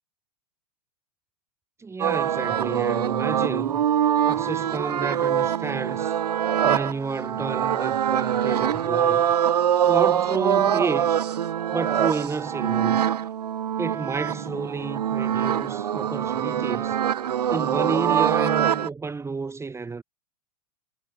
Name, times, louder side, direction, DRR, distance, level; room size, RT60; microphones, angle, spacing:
voice 1, 1.8-3.8 4.3-6.2 6.6-9.2 9.9-11.2 11.7-13.1 13.8-17.0 17.5-20.0, right 4 dB, 15° right, 2.6 m, -30 dB
sound 1, 2.0-18.9, right 9 dB, 75° right, 1.2 m, -24 dB
hypercardioid pair, 100°, 20 cm